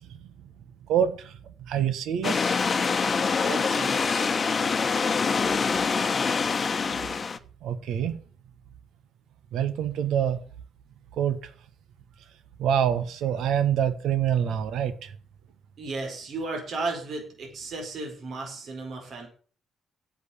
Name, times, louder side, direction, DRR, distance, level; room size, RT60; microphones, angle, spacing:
voice 1, 0.9-1.4 1.7-2.6 7.6-8.2 9.5-10.4 11.2-11.5 12.6-15.1, right 9 dB, 80° right, 1.4 m, -26 dB
sound 1, 2.2-7.4, left 5 dB, 35° left, 1.0 m, -25 dB
voice 2, 3.3-4.4 15.8-19.3, right 3 dB, 60° right, 4.9 m, -34 dB
8.5 x 8.0 x 8.0 m
cardioid pair, 90°, 0 cm